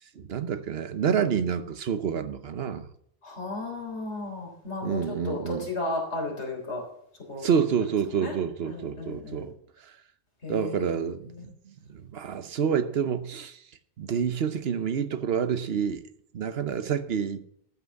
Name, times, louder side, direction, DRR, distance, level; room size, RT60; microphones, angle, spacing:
voice 1, 0.2-2.9 4.8-5.7 7.4-9.5 9.8-9.9 10.5-13.6 14.0-16.0 16.3-17.5, right 7 dB, 65° right, 1.1 m, -28 dB
voice 2, 3.2-6.8 7.3-7.5 8.2-8.3 8.7-9.5 10.4-11.0, left 2 dB, 90° left, 4.0 m, -34 dB
13.5 x 6.0 x 7.2 m
omnidirectional pair, 1.1 m